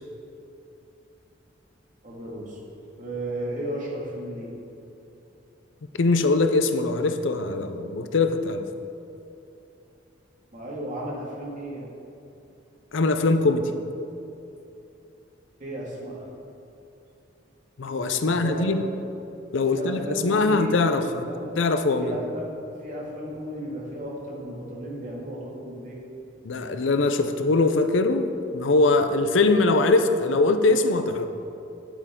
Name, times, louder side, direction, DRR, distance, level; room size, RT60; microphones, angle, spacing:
voice 1, 2.0-2.6 2.9-4.5 10.5-11.9 15.6-16.3 18.2-18.9 19.7-21.5 22.0-22.5 22.8-26.0, equal, 40° right, -4 dB, 2.0 m, -34 dB
voice 2, 6.0-8.7 12.9-13.7 17.8-18.8 19.5-21.2 21.6-22.2 26.4-31.3, left 3 dB, 75° left, 8 dB, 0.6 m, -22 dB
10.0 x 8.3 x 3.7 m, 2.8 s
head